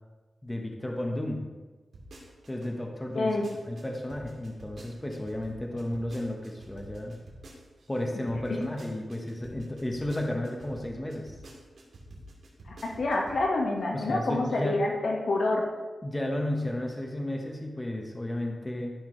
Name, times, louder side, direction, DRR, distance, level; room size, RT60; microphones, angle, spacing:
voice 1, 0.4-1.4 2.5-3.4 3.7-7.2 7.9-11.4 13.9-14.8 16.0-18.9, left 1 dB, 15° left, 1 dB, 1.2 m, -33 dB
sound 1, 1.9-2.7 3.1-8.0 8.3-13.5 13.8-13.9, right 1 dB, 80° right, 2.4 m, -48 dB
voice 2, 3.1-3.5 8.5-8.6 12.7-15.6, left 2 dB, 75° left, -1 dB, 1.6 m, -27 dB
13.5 x 5.7 x 3.3 m, 1.2 s
wide cardioid pair, 90°, 0 cm